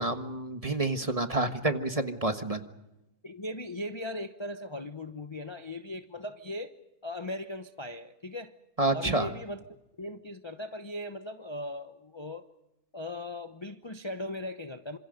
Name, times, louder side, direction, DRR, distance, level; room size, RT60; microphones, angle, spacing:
voice 1, 0.0-2.6 8.8-9.3, right 2 dB, 25° right, 1.4 m, -28 dB
voice 2, 3.2-6.7 7.0-8.5 8.9-9.6 10.0-12.4 12.9-15.0, left 1 dB, 25° left, 0.8 m, -38 dB
27.5 x 26.5 x 5.2 m
omnidirectional pair, 1.6 m